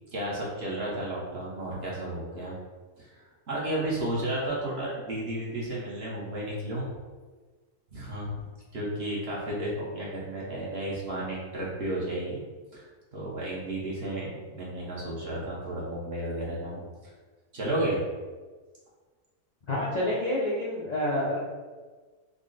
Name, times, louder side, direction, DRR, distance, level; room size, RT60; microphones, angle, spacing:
voice 1, 0.1-2.6 3.0-6.9 7.9-8.5 8.7-12.4 12.7-12.8 13.1-16.8 17.5-18.0, right 1 dB, 50° right, -5 dB, 0.9 m, -32 dB
voice 2, 19.7-21.4, left 1 dB, 75° left, -7 dB, 0.3 m, -28 dB
3.8 x 2.1 x 3.7 m, 1.4 s
omnidirectional pair, 1.6 m